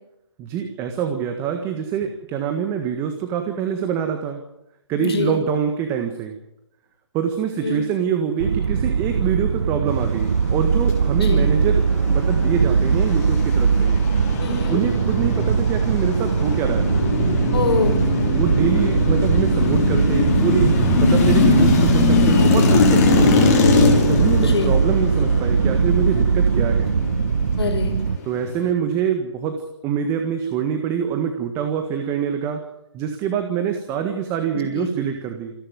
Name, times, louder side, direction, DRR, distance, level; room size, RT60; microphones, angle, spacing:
voice 1, 0.4-4.4 4.9-6.4 7.1-13.9 14.7-16.9 18.3-23.6 24.1-26.9 28.2-32.6 32.9-35.5, right 8 dB, 15° right, 6 dB, 1.7 m, -25 dB
voice 2, 5.0-5.4 7.6-7.8 11.2-11.5 14.4-14.8 17.5-18.0 24.4-24.7 27.6-27.9 34.7-34.9, left 4 dB, 60° left, 4 dB, 7.2 m, -24 dB
sound 1, 8.4-28.2, right 6 dB, 65° right, 0.8 m, -20 dB
sound 2, 12.0-28.7, left 4 dB, 30° left, 6.0 m, -21 dB
28.0 x 11.5 x 9.5 m, 0.88 s
figure-of-eight pair, 150°, 15 cm